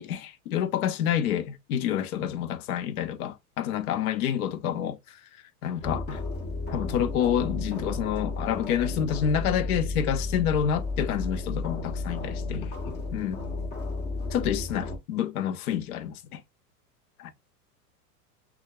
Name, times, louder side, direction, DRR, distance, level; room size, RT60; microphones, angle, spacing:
voice 1, 0.0-5.2 5.6-6.2 6.7-13.4 14.3-16.4 17.2-17.3, left 9 dB, 70° left, 0.7 m, -28 dB
sound 1, 5.8-15.0, left 3 dB, 20° left, 1.0 m, -33 dB
6.3 x 2.4 x 2.2 m
hypercardioid pair, 115°, 46 cm